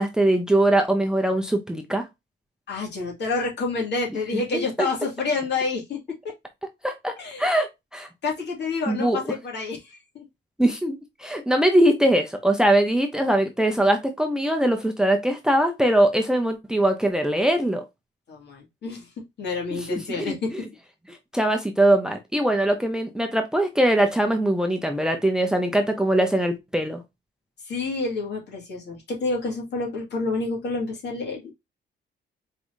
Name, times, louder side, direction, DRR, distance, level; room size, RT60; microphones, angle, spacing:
voice 1, 0.0-2.1 4.3-4.9 6.8-7.1 7.4-8.1 8.9-9.2 10.6-17.8 19.7-20.6 21.3-27.0, right 1 dB, 5° right, 0.7 m, -22 dB
voice 2, 2.7-6.0 6.2-6.3 7.2-7.5 8.2-10.2 18.3-19.1 19.4-20.5 27.6-31.4, left 3 dB, 60° left, 2.3 m, -28 dB
4.6 x 3.4 x 2.6 m
cardioid pair, 90°, 20 cm